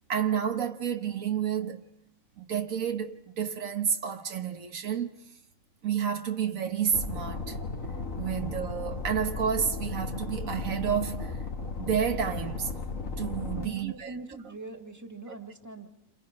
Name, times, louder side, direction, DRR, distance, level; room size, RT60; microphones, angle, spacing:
voice 1, 0.1-1.8 2.4-5.2 5.8-7.6 8.2-11.3 11.8-12.7 13.2-14.1, right 8 dB, 80° right, 1.6 m, -30 dB
sound 1, 6.9-13.6, left 4 dB, 75° left, 2.6 m, -35 dB
voice 2, 13.5-15.9, right 3 dB, 15° right, 2.1 m, -43 dB
29.5 x 27.0 x 5.4 m
omnidirectional pair, 1.4 m